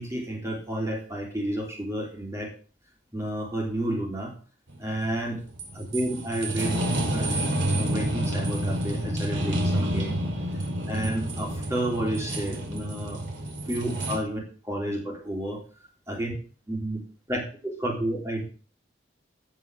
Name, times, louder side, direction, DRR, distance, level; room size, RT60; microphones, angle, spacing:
voice 1, 0.0-2.5 3.1-4.3 4.8-5.4 5.7-6.8 7.1-7.4 7.7-10.2 10.9-13.2 13.7-15.6 16.1-16.3 16.7-17.0 17.3-18.5, right 1 dB, 15° right, -1 dB, 3.5 m, -31 dB
sound 1, 4.7-14.2, right 1 dB, 75° right, 2.5 m, -29 dB
15.5 x 5.4 x 6.4 m, 0.39 s
head